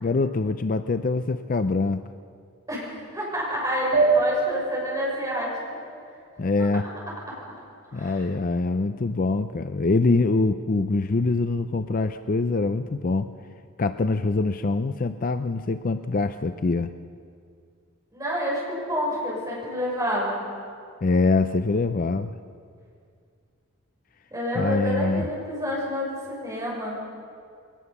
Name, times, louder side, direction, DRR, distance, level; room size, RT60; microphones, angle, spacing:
voice 1, 0.0-2.0 6.4-6.9 7.9-13.3 13.8-16.9 21.0-22.3 24.5-25.3, left 3 dB, 40° left, 10 dB, 0.5 m, -24 dB
voice 2, 2.7-5.5 7.9-8.2 18.1-20.4 24.3-27.0, equal, 15° right, -4 dB, 6.6 m, -28 dB
sound 1, 3.9-6.9, right 3 dB, 50° right, 6.3 m, -26 dB
21.5 x 19.0 x 7.0 m, 2.3 s
head